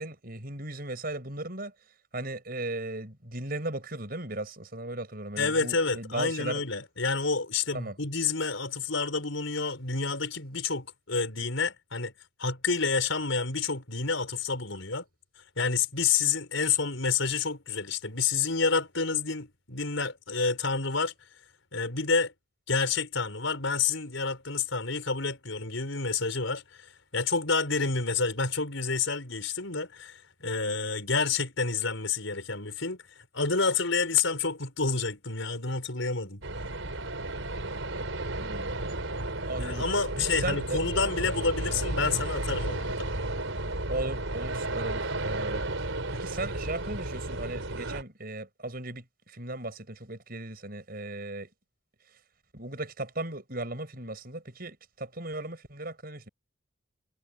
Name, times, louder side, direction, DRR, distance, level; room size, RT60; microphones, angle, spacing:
voice 1, 0.0-1.7 2.1-6.6 7.7-7.9 38.4-39.0 39.4-39.8 40.2-40.8 43.9-51.5 52.5-56.3, right 2 dB, 50° right, 6.5 m, -37 dB
voice 2, 5.4-12.1 12.4-15.0 15.6-21.1 21.7-22.3 22.7-36.4 39.6-43.1, left 4 dB, 80° left, 5.1 m, -29 dB
sound 1, 36.4-48.0, right 2 dB, 85° right, 5.0 m, -33 dB
head